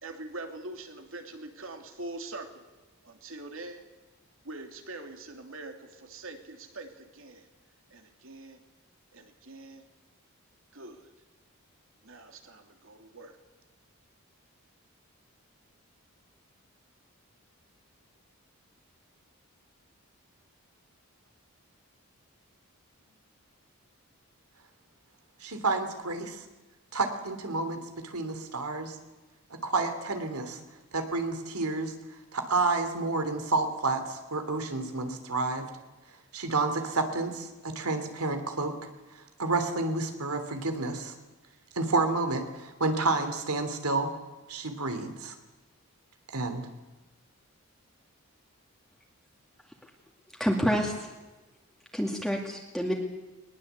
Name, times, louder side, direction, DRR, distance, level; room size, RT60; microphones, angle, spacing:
voice 1, 0.0-2.6 3.0-3.9 4.4-7.5 7.9-8.6 9.1-9.8 10.7-11.1 12.0-13.4, right 2 dB, 60° right, 5 dB, 2.8 m, -43 dB
voice 2, 25.4-26.4 26.9-29.0 29.5-30.6 30.9-31.9 32.3-35.7 36.3-38.7 39.1-41.1 41.7-44.1 44.5-45.3 46.3-46.7, right 3 dB, 85° right, 7 dB, 3.1 m, -30 dB
voice 3, 50.4-51.1 51.9-52.9, equal, ahead, 0 dB, 2.2 m, -28 dB
20.5 x 20.5 x 8.2 m, 1.1 s
head